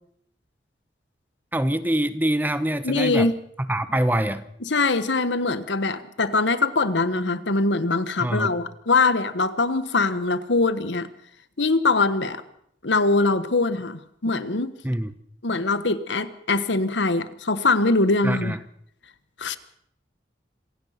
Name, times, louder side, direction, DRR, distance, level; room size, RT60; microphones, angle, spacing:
voice 1, 1.5-3.3 3.6-4.4 8.2-8.5 14.8-15.1 18.2-18.6, right 1 dB, 10° right, 13 dB, 0.9 m, -24 dB
voice 2, 2.8-3.4 4.7-11.1 11.6-12.4 12.8-14.7 15.4-18.6 19.4-19.6, left 3 dB, 85° left, 13 dB, 1.4 m, -22 dB
26.5 x 17.0 x 5.9 m, 0.69 s
head